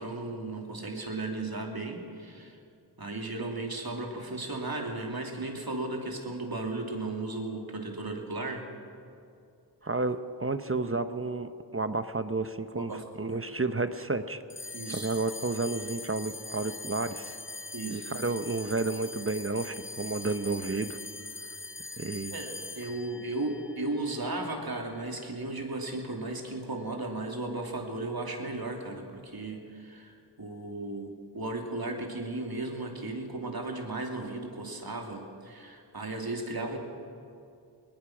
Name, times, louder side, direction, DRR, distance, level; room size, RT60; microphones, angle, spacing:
voice 1, 0.0-2.6 3.0-8.6 12.7-13.4 14.7-15.1 17.7-18.1 22.3-36.8, right 2 dB, 60° right, 2 dB, 2.8 m, -35 dB
voice 2, 9.8-14.4 14.9-17.4 17.9-21.0 22.0-22.3, right 3 dB, 30° right, 10 dB, 0.9 m, -31 dB
sound 1, 14.5-25.1, left 3 dB, 30° left, 0.9 m, -42 dB
20.5 x 20.5 x 6.2 m, 2.5 s
wide cardioid pair, 45°, 41 cm